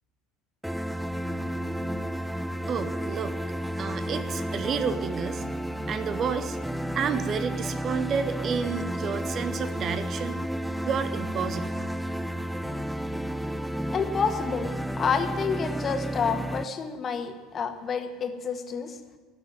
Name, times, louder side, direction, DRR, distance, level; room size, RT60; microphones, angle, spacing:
sound 1, 0.6-16.6, equal, ahead, 0.7 m, -32 dB
voice 1, 2.7-3.4 3.8-5.4 5.9-6.6 6.9-10.4 10.8-11.7, right 6 dB, 40° right, 12 dB, 1.0 m, -30 dB
voice 2, 13.9-14.7 15.0-19.0, left 6 dB, 35° left, 6 dB, 1.7 m, -29 dB
18.0 x 6.7 x 9.2 m, 1.4 s
figure-of-eight pair, 65°, 0 cm